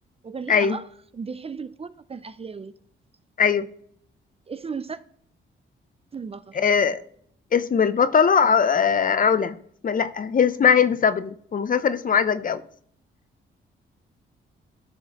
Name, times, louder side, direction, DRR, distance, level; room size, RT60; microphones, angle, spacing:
voice 1, 0.2-0.8 1.1-2.7 4.5-5.0 6.1-6.6, right 5 dB, 30° right, 0.4 m, -35 dB
voice 2, 6.5-7.0 7.5-9.5 9.8-12.6, left 7 dB, 40° left, 0.5 m, -20 dB
13.5 x 4.7 x 2.9 m
cardioid pair, 90°, 21 cm